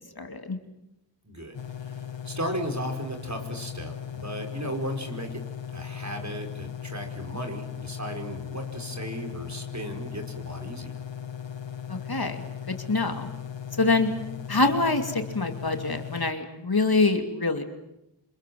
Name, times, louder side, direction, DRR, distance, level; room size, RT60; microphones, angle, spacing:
voice 1, 0.2-0.6 11.9-12.4 12.7-13.3 13.8-14.1 14.5-17.6, left 3 dB, 55° left, 6 dB, 2.7 m, -25 dB
voice 2, 1.2-5.4 5.7-11.0, right 1 dB, 40° right, 4 dB, 5.2 m, -35 dB
sound 1, 1.5-16.3, left 9 dB, 85° left, 1.3 m, -38 dB
28.0 x 26.5 x 7.8 m, 0.88 s
wide cardioid pair, 65°, 43 cm